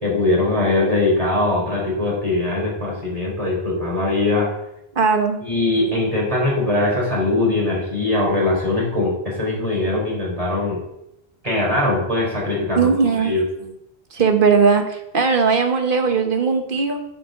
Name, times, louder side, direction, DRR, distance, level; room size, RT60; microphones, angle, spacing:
voice 1, 0.0-4.5 5.4-10.8 11.4-12.9 13.2-13.4, left 2 dB, 35° right, -4 dB, 4.0 m, -21 dB
voice 2, 4.9-5.4 12.8-13.4 14.1-17.0, right 5 dB, 60° right, 5 dB, 1.2 m, -18 dB
8.5 x 4.8 x 7.3 m, 0.81 s
omnidirectional pair, 1.0 m